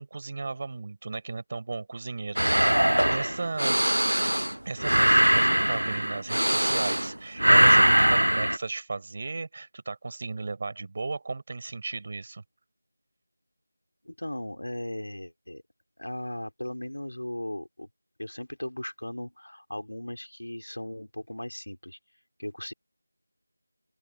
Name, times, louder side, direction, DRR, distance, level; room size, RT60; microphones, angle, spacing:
voice 1, 0.0-2.8 3.1-3.9 4.6-12.4, right 3 dB, 30° right, 4.4 m, -35 dB
sound 1, 2.4-7.1 7.4-8.6, right 1 dB, 75° right, 0.7 m, -21 dB
voice 2, 14.0-15.6 16.0-17.9 18.2-22.0 22.4-22.7, left 1 dB, 70° left, 3.2 m, -37 dB
open air
figure-of-eight pair, 170°, 0 cm